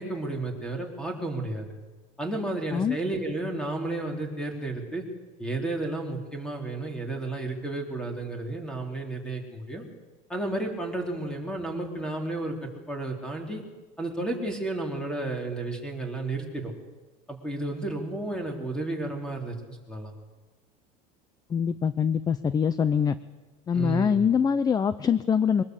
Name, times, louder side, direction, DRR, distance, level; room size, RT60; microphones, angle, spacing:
voice 1, 0.0-1.7 2.2-5.0 5.4-9.8 10.3-13.6 14.0-16.7 17.3-20.1 23.7-24.2, right 2 dB, 5° left, 2 dB, 4.4 m, -32 dB
voice 2, 21.5-23.1 23.7-25.6, left 7 dB, 20° left, 14 dB, 0.6 m, -24 dB
23.0 x 19.5 x 8.3 m, 1.2 s
supercardioid pair, 140°, 19 cm